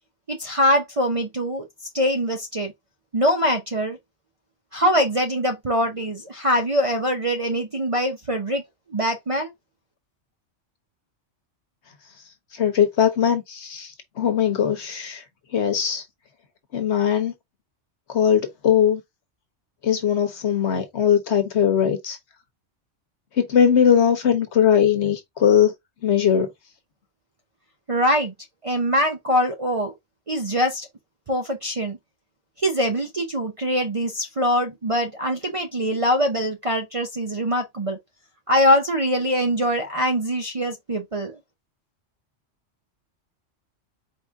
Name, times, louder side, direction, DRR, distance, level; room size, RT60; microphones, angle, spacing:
voice 1, 0.3-1.6 1.9-2.7 3.1-4.0 4.7-8.6 8.9-9.5 27.9-28.3 28.6-29.9 30.3-30.9 31.3-32.0 32.6-38.0 38.5-41.3, equal, 35° right, 0.6 m, -23 dB
voice 2, 12.6-13.9 14.2-15.2 15.5-16.0 16.7-17.3 18.1-19.0 19.8-22.2 23.4-25.7 26.0-26.5, left 8 dB, 65° left, 1.3 m, -20 dB
4.7 x 2.6 x 3.5 m
omnidirectional pair, 1.3 m